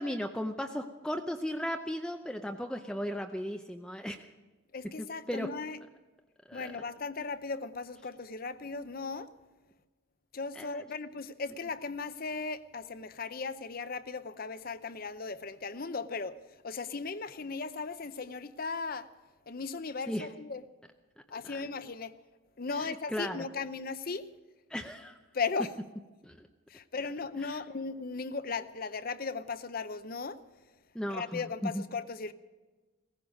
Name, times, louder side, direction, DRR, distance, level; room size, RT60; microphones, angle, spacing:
voice 1, 0.0-4.3 5.0-5.5 6.5-6.7 10.5-10.9 20.1-20.3 21.4-21.6 22.7-23.5 24.7-25.2 26.2-26.5 27.4-27.6 30.9-31.8, equal, 5° left, 5 dB, 0.5 m, -36 dB
voice 2, 4.7-5.8 6.5-9.3 10.3-16.4 16.6-19.1 19.5-20.6 21.3-22.1 22.6-24.3 25.3-25.7 26.7-30.4 31.1-32.3, left 4 dB, 45° left, 13 dB, 0.7 m, -37 dB
17.5 x 15.5 x 5.2 m, 1.2 s
head